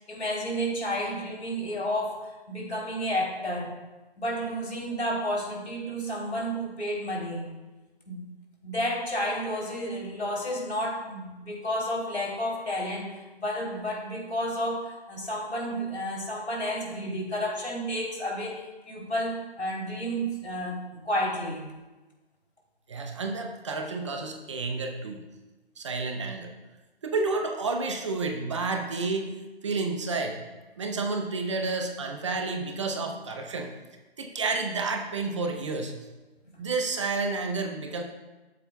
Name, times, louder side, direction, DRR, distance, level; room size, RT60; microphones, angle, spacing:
voice 1, 0.1-3.8 4.2-7.5 8.1-8.2 8.6-21.7 36.5-36.6, equal, 85° left, -1 dB, 3.1 m, -31 dB
voice 2, 22.9-25.2 25.8-26.5 27.0-29.3 29.6-30.4 30.8-33.7 34.2-36.0 36.6-38.0, right 3 dB, 30° right, 4 dB, 0.7 m, -30 dB
13.5 x 7.5 x 2.3 m, 1.2 s
figure-of-eight pair, 150°, 32 cm